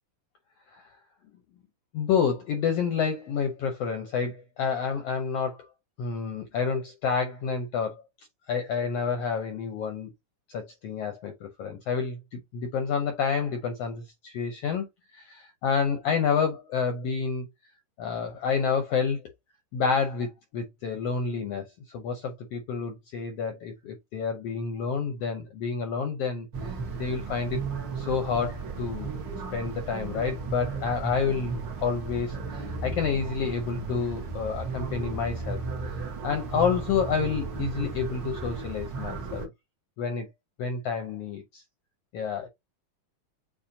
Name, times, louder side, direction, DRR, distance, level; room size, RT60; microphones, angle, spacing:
voice 1, 1.9-5.7 6.0-7.9 8.5-10.1 10.5-14.8 15.1-17.5 18.0-19.2 19.7-26.5 26.9-27.6 28.0-29.2 29.5-35.6 36.0-39.5 40.0-40.3 40.6-41.6 42.1-42.5, left 6 dB, 75° left, 1.4 m, -29 dB
sound 1, 26.5-39.5, right 4 dB, 50° right, 1.4 m, -35 dB
7.1 x 2.4 x 2.7 m
omnidirectional pair, 3.5 m